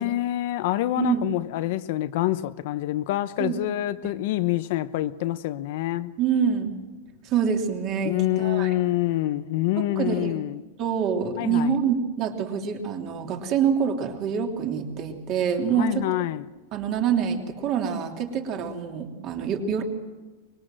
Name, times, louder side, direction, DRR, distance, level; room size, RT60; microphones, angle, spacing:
voice 1, 0.0-6.1 8.0-10.6 11.4-11.7 15.8-16.5, left 15 dB, 50° left, 0.8 m, -26 dB
voice 2, 1.0-1.3 3.4-3.6 6.2-6.7 7.2-8.7 9.8-10.4 10.8-16.0 16.7-19.8, right 7 dB, 30° right, 3.1 m, -26 dB
24.5 x 22.0 x 7.6 m
supercardioid pair, 170°, 0 cm